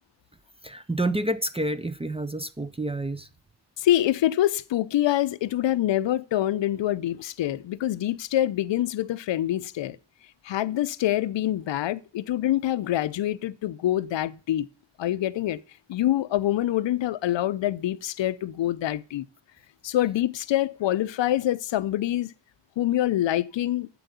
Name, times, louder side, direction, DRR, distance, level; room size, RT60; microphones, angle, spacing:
voice 1, 0.6-3.3, right 1 dB, 10° right, 0.8 m, -29 dB
voice 2, 3.8-10.0 10.4-14.7 15.0-15.6 15.9-19.2 19.8-22.3 22.8-23.9, left 13 dB, 65° left, 0.7 m, -25 dB
9.0 x 7.8 x 7.0 m
supercardioid pair, 55°, 48 cm